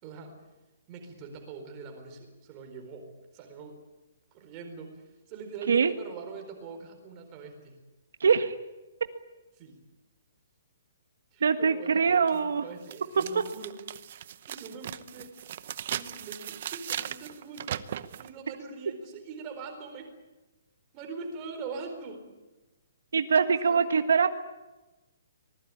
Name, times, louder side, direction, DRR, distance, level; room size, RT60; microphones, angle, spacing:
voice 1, 0.0-0.4 0.9-3.8 4.3-7.8 9.6-9.8 11.3-13.8 14.5-15.3 15.9-17.8 18.2-20.1 20.9-22.3 23.6-23.8, right 4 dB, 20° right, 4 dB, 4.2 m, -43 dB
voice 2, 8.2-8.5 11.4-12.6 23.1-24.3, right 6 dB, 70° right, 8 dB, 1.6 m, -23 dB
sound 1, 12.3-12.4 12.9-18.3, right 10 dB, 35° right, 0.8 m, -38 dB
25.0 x 20.0 x 9.9 m, 1.1 s
hypercardioid pair, 180°, 0 cm